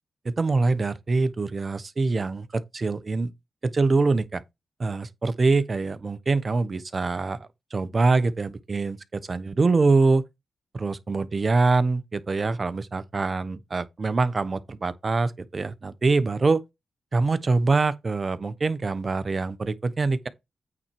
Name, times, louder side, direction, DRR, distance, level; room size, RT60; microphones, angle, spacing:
voice 1, 0.2-3.3 3.6-4.4 4.8-10.2 10.7-16.6 17.1-20.3, right 3 dB, 45° right, 1.0 m, -24 dB
8.6 x 4.3 x 4.8 m
cardioid pair, 75°, 0 cm